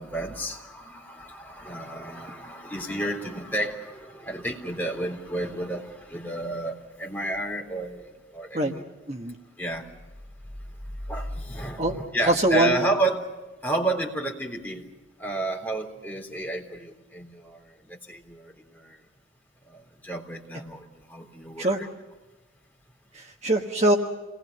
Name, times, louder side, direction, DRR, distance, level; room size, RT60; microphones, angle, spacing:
voice 1, 0.0-8.8 9.6-9.8 11.1-13.3 13.6-14.8 15.2-17.6 17.9-19.0 19.7-21.7, right 2 dB, 10° left, 0 dB, 3.7 m, -31 dB
voice 2, 12.2-13.0 21.6-21.8 23.1-24.0, right 1 dB, 35° right, 3 dB, 1.4 m, -23 dB
29.0 x 20.0 x 6.8 m, 1.1 s
head